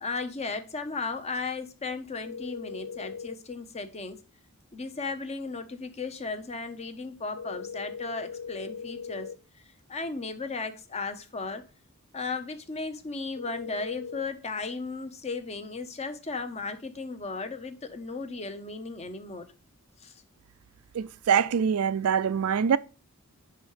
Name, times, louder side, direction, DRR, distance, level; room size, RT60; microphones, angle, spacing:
voice 1, 0.0-4.2 4.7-9.3 9.9-11.6 12.1-19.5 20.0-20.1, left 3 dB, 30° left, 0.7 m, -35 dB
sound 1, 2.2-3.4 7.3-9.4 13.3-14.2, left 5 dB, 70° left, 0.4 m, -39 dB
voice 2, 20.9-22.8, right 7 dB, 75° right, 0.4 m, -24 dB
5.4 x 5.1 x 5.5 m
head